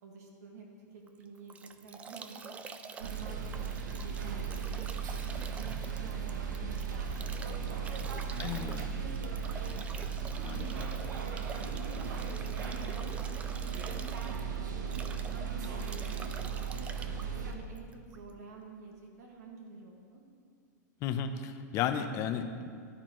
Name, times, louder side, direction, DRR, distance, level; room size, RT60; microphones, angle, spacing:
voice 1, 0.0-2.6 3.0-3.7 4.0-5.1 5.5-7.4 7.7-9.0 10.3-10.9 11.2-13.3 13.6-14.4 14.8-16.9 17.3-20.2, right 4 dB, 60° right, 0 dB, 1.9 m, -50 dB
Bathtub (filling or washing) / Drip / Trickle dribble, 1.1-18.3, right 5 dB, 15° right, 0.4 m, -48 dB
sound 1, 3.0-17.5, right 6 dB, 80° right, 1.3 m, -36 dB
voice 2, 8.4-8.9 10.4-10.8 21.0-22.7, left 8 dB, 30° left, 8 dB, 0.7 m, -34 dB
15.0 x 10.5 x 3.1 m, 2.3 s
supercardioid pair, 155°, 10 cm